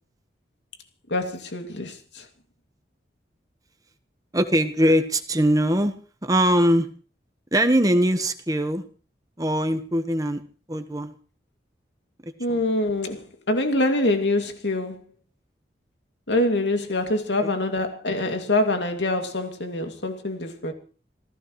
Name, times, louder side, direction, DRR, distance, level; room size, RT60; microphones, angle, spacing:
voice 1, 1.1-2.2 12.4-15.0 16.3-20.7, left 2 dB, 90° left, 2.6 m, -25 dB
voice 2, 4.3-5.9 6.2-6.9 7.5-8.8 9.4-10.4 10.7-11.1 12.5-12.6 17.4-17.6, equal, 20° right, 1.3 m, -21 dB
27.0 x 15.5 x 3.2 m
head